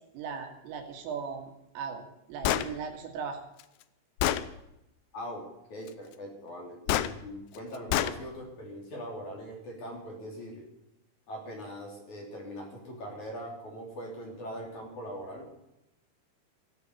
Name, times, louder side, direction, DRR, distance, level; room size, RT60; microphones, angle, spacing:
voice 1, 0.1-1.5 1.8-3.4, right 6 dB, 80° right, 4 dB, 4.4 m, -38 dB
Gunshot gunfire, 2.4-2.7 3.6-3.7 4.2-4.5 6.9-7.1 7.9-8.2, left 13 dB, 90° left, 2.4 m, -26 dB
voice 2, 5.7-10.7 11.3-15.5, equal, 40° left, 0 dB, 4.0 m, -41 dB
16.0 x 8.3 x 9.5 m, 0.87 s
omnidirectional pair, 5.9 m